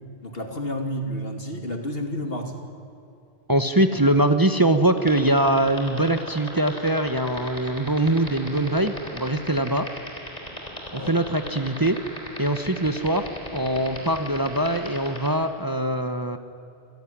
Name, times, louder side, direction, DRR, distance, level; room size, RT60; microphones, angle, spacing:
voice 1, 0.2-2.5 10.9-11.1, equal, 65° left, 4 dB, 2.8 m, -30 dB
voice 2, 3.5-9.9 10.9-12.0 12.4-16.4, right 1 dB, 20° right, 8 dB, 1.1 m, -22 dB
sound 1, 5.0-15.3, left 1 dB, 35° left, 4.7 m, -35 dB
26.5 x 17.0 x 10.0 m, 2.7 s
omnidirectional pair, 1.1 m